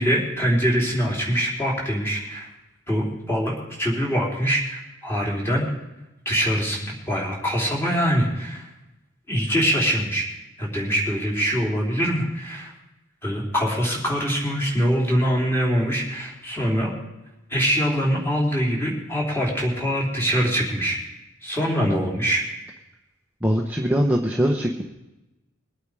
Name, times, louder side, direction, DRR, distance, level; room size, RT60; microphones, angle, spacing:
voice 1, 0.0-2.5 2.9-5.7 6.3-8.7 9.3-10.3 10.6-12.7 13.2-16.9 17.5-21.0 21.4-22.4, equal, 10° left, -2 dB, 3.6 m, -23 dB
voice 2, 23.4-24.8, equal, 10° right, 0 dB, 1.0 m, -22 dB
22.0 x 8.7 x 4.9 m, 0.97 s
head